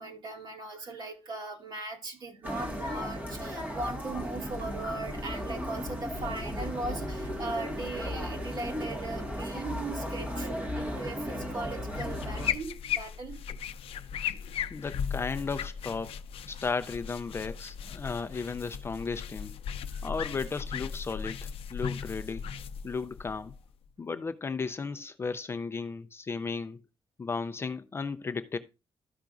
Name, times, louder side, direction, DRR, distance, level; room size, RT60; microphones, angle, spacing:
voice 1, 0.0-10.5 10.8-13.4 16.5-16.6 19.9-20.0, right 2 dB, 50° right, 2.2 m, -39 dB
sound 1, 2.4-12.5, equal, 20° right, 1.7 m, -35 dB
sound 2, 11.9-23.9, left 8 dB, 80° left, 0.5 m, -37 dB
voice 2, 14.7-16.2 16.5-19.6 20.0-21.4 21.7-22.4 22.8-23.5 24.0-26.8 27.2-28.6, left 4 dB, 25° left, 0.4 m, -35 dB
13.0 x 5.8 x 2.5 m
wide cardioid pair, 170°, 9 cm